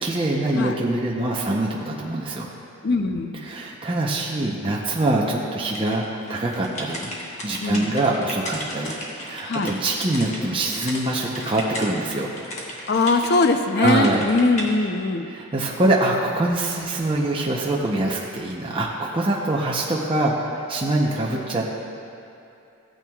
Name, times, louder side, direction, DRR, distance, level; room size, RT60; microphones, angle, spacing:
voice 1, 0.0-2.5 3.3-7.1 7.4-12.3 13.8-14.2 15.2-21.6, right 2 dB, 25° right, -3 dB, 0.7 m, -24 dB
voice 2, 2.8-3.5 7.6-7.9 9.4-9.8 12.9-15.3, left 3 dB, 45° left, 6 dB, 0.5 m, -21 dB
sound 1, 5.7-11.0 11.3-13.5 13.9-14.7, left 1 dB, 30° left, 1.3 m, -35 dB
15.5 x 9.0 x 2.3 m, 2.8 s
head